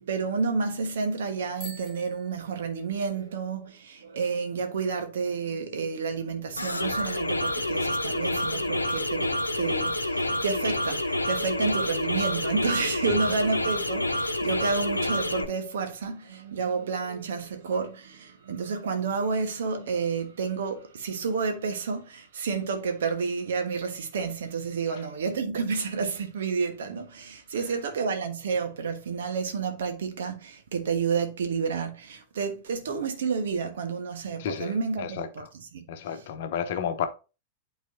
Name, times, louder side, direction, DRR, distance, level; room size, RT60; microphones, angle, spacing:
voice 1, 0.0-35.4 35.7-35.8, right 5 dB, 60° right, 1.3 m, -30 dB
Bicycle bell, 1.5-3.3, equal, 10° right, 4.4 m, -47 dB
sound 1, 6.6-15.4, left 1 dB, 85° left, 0.8 m, -28 dB
voice 2, 34.4-35.5 35.9-37.1, left 8 dB, 55° left, 0.9 m, -32 dB
11.5 x 4.1 x 2.7 m
figure-of-eight pair, 90°, 0 cm